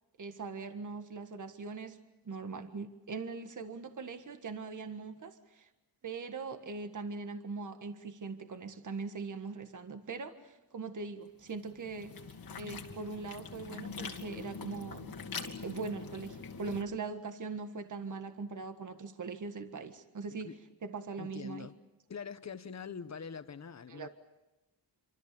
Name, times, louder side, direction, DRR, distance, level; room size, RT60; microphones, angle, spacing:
voice 1, 0.2-2.0 2.3-5.7 6.0-12.2 12.6-15.1 15.4-20.5 20.8-21.7 23.9-24.1, right 4 dB, 45° right, 1.7 m, -41 dB
sound 1, 11.4-16.8, left 5 dB, 55° left, 2.3 m, -44 dB
voice 2, 21.2-21.8 22.1-24.1, left 6 dB, 40° left, 1.1 m, -44 dB
27.0 x 25.5 x 6.9 m
wide cardioid pair, 120°, 42 cm